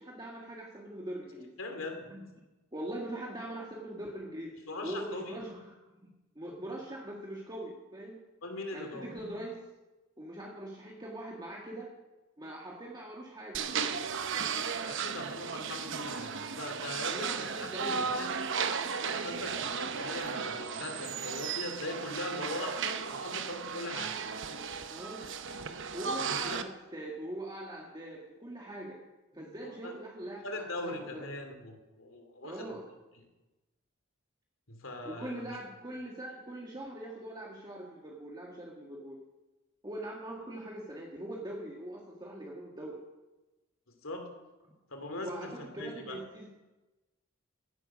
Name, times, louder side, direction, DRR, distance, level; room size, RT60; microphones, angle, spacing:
voice 1, 0.0-2.3 2.7-4.5 4.8-6.1 6.4-8.2 8.7-9.6 10.2-11.9 12.4-13.7 17.0-18.1 24.9-25.3 25.9-29.0 29.3-31.2 32.4-32.8 35.1-39.2 39.8-43.0 45.2-46.5, right 1 dB, 20° right, -2 dB, 1.8 m, -42 dB
voice 2, 1.6-2.1 4.7-5.4 8.4-9.1 14.8-17.5 17.8-18.5 19.0-24.2 26.1-26.6 29.6-29.9 30.4-32.8 34.7-35.5 43.9-44.3 44.9-45.5 45.8-46.2, left 2 dB, 75° left, 4 dB, 2.9 m, -40 dB
sound 1, 13.5-26.6, right 6 dB, 65° right, 0.9 m, -35 dB
16.0 x 10.5 x 6.3 m, 1.1 s
head